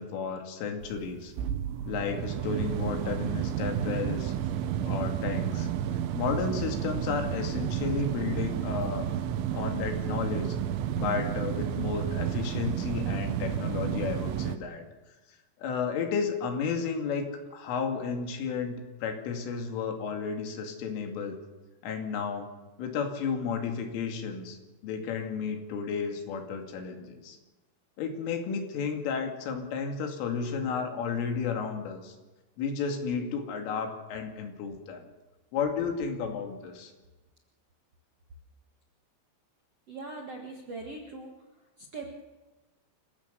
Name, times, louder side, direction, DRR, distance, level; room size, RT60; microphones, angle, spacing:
voice 1, 0.0-1.3 1.9-4.3 4.8-5.7 6.1-9.1 9.5-10.6 10.9-14.8 15.6-17.3 17.5-21.4 21.8-22.5 22.8-24.6 24.8-27.4 28.0-32.2 32.6-35.0 35.5-36.9, left 6 dB, 90° left, 4 dB, 4.9 m, -32 dB
sound 1, 0.8-14.6, right 10 dB, 80° right, 3.4 m, -31 dB
voice 2, 39.9-41.3 41.8-42.2, right 3 dB, 60° right, 1 dB, 1.6 m, -41 dB
27.0 x 15.5 x 6.8 m, 1.2 s
omnidirectional pair, 5.5 m